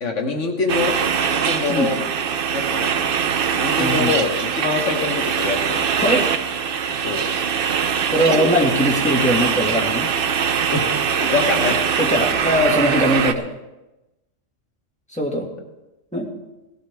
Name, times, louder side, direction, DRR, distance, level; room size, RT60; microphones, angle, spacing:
voice 1, 0.0-0.9 1.3-2.0 2.5-6.0 6.9-7.3 8.3-8.7 10.7-11.8, left 4 dB, 75° left, 2 dB, 1.6 m, -25 dB
sound 1, 0.7-13.3, right 7 dB, 55° right, 0.7 m, -22 dB
voice 2, 3.8-4.1 6.0-6.3 8.1-10.1 12.0-13.5 15.1-15.5 16.1-16.3, equal, 5° left, -3 dB, 1.9 m, -20 dB
17.0 x 11.5 x 3.5 m, 1.0 s
omnidirectional pair, 1.3 m